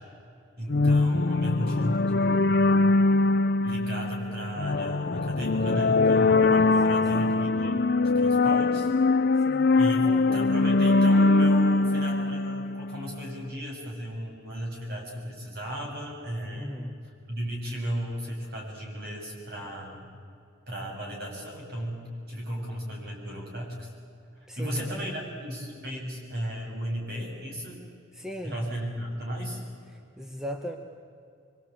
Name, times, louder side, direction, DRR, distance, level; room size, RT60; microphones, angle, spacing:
voice 1, 0.6-3.0 3.6-7.9 8.1-8.9 9.7-16.8 17.3-20.1 20.7-23.9 24.6-27.9 28.4-29.6, equal, 50° right, -1 dB, 7.4 m, -35 dB
sound 1, 0.7-13.2, left 3 dB, 50° left, 0.5 m, -22 dB
voice 2, 6.9-7.2 9.4-10.4 16.6-17.0 24.5-25.1 28.1-28.5 29.9-30.8, equal, ahead, 4 dB, 1.1 m, -38 dB
24.5 x 24.0 x 8.7 m, 2.5 s
head